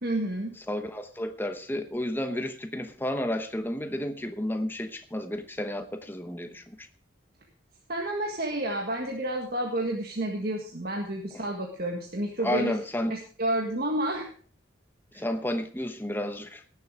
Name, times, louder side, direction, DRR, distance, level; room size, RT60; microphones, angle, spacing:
voice 1, 0.0-0.6 7.9-12.8 13.1-14.3 15.1-15.3, right 1 dB, 50° right, 1.7 m, -30 dB
voice 2, 0.7-6.9 11.3-11.4 12.4-13.1 15.1-16.6, left 1 dB, 10° left, 0.9 m, -31 dB
18.0 x 7.1 x 5.0 m
head